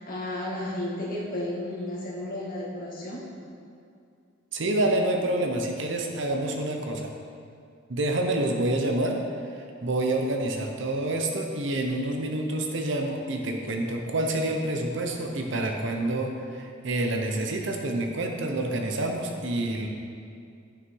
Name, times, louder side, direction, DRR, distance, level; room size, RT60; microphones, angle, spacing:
voice 1, 0.0-3.2, left 1 dB, 45° left, -5 dB, 2.0 m, -33 dB
voice 2, 4.5-7.1 7.9-9.2 9.5-19.9, right 1 dB, 65° right, 3 dB, 0.9 m, -28 dB
9.9 x 6.2 x 4.7 m, 2.4 s
head